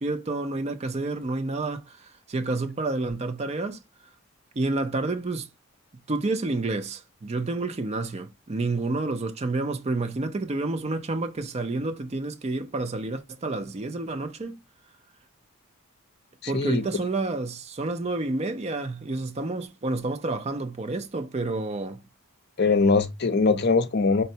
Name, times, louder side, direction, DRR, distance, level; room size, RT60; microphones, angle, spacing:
voice 1, 0.0-3.8 4.6-5.5 6.1-14.6 16.5-22.0, right 2 dB, 30° right, 0.4 m, -29 dB
voice 2, 16.4-16.8 22.6-24.2, left 4 dB, 50° left, 0.6 m, -22 dB
5.3 x 2.1 x 2.7 m
head